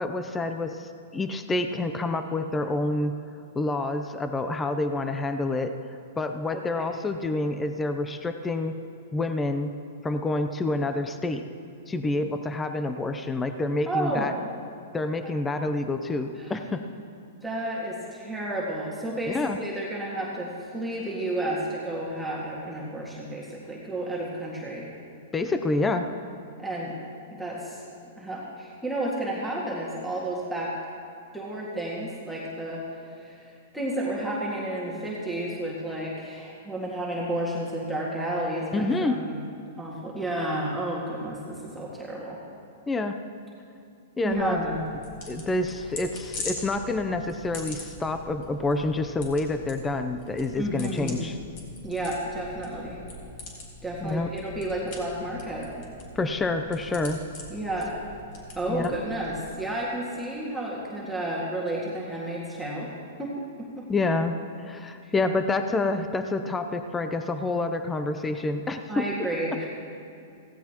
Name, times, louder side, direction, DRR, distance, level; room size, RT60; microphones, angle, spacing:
voice 1, 0.0-3.1 3.5-5.8 6.2-8.8 9.1-9.7 10.0-11.4 11.9-14.3 14.9-16.8 19.3-19.6 25.3-26.1 38.7-39.2 42.9-43.2 44.2-44.6 45.3-51.4 54.0-54.3 56.2-57.2 58.7-58.9 63.9-69.1, left 2 dB, 15° left, 8 dB, 0.6 m, -28 dB
voice 2, 6.5-7.0 13.9-14.4 15.2-15.4 16.4-16.6 17.4-24.9 26.6-27.0 27.4-27.8 28.2-30.8 31.3-32.8 33.1-39.4 39.8-42.4 44.2-44.8 50.6-51.2 51.8-53.0 53.8-55.9 57.5-58.0 58.6-62.9 63.2-63.3 63.6-63.9 65.0-65.1 68.9-69.7, right 1 dB, 5° right, -6 dB, 1.9 m, -31 dB
sound 1, 44.3-59.5, left 2 dB, 45° left, 3.1 m, -42 dB
16.5 x 15.5 x 3.0 m, 2.6 s
hypercardioid pair, 135°, 0 cm